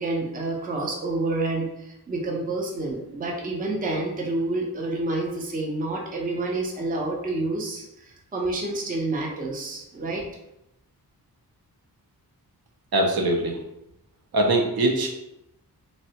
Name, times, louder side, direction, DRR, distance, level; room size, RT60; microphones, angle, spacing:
voice 1, 0.0-10.3, right 2 dB, 25° right, -1 dB, 0.4 m, -28 dB
voice 2, 12.9-13.6 14.3-15.1, right 1 dB, 70° right, 2 dB, 0.6 m, -22 dB
3.3 x 2.1 x 2.7 m, 0.87 s
wide cardioid pair, 145°, 38 cm